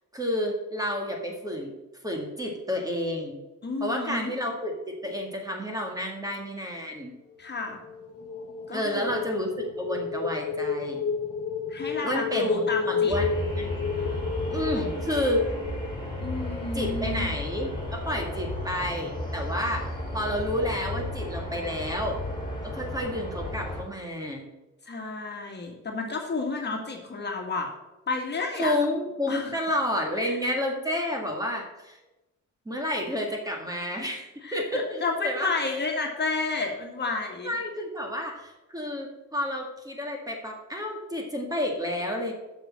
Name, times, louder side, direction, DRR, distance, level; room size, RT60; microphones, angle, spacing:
voice 1, 0.1-1.7 2.0-3.4 3.8-7.1 8.7-11.0 12.0-13.7 14.5-15.5 16.7-22.2 22.6-24.5 28.6-32.0 32.7-35.5 37.4-42.3, left 1 dB, 10° right, 1 dB, 2.0 m, -30 dB
voice 2, 3.6-4.3 7.4-7.8 8.7-9.2 11.7-13.1 14.0-14.2 14.7-14.8 16.2-17.3 24.8-27.7 28.1-28.7 29.3-29.5 30.2-30.4 34.4-37.5, left 3 dB, 35° left, 1 dB, 1.9 m, -31 dB
sound 1, 7.6-16.5, left 5 dB, 50° left, 1.4 m, -31 dB
sound 2, 13.1-23.8, left 1 dB, 15° left, 2.8 m, -33 dB
6.8 x 6.3 x 7.5 m, 1.0 s
cardioid pair, 90°, 30 cm